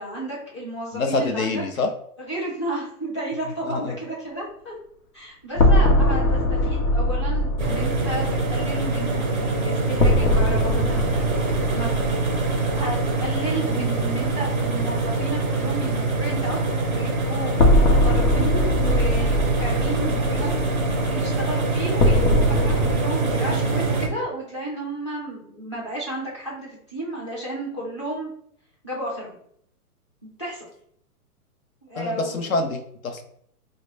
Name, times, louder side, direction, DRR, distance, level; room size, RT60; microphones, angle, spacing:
voice 1, 0.0-1.6 2.3-4.7 5.1-11.3 11.7-16.6 16.9-28.3 28.8-29.4 30.2-30.6 31.8-32.5, right 1 dB, 20° left, -5 dB, 0.6 m, -32 dB
voice 2, 0.9-1.9 3.6-4.0 31.9-33.2, left 3 dB, 60° left, 5 dB, 0.8 m, -26 dB
sound 1, 5.5-13.3 13.6-13.7 17.5-23.0, left 1 dB, 85° left, 1.0 m, -22 dB
sound 2, 7.6-24.1, right 3 dB, 35° right, 0.4 m, -24 dB
3.8 x 2.2 x 3.3 m, 0.66 s
hypercardioid pair, 180°, 46 cm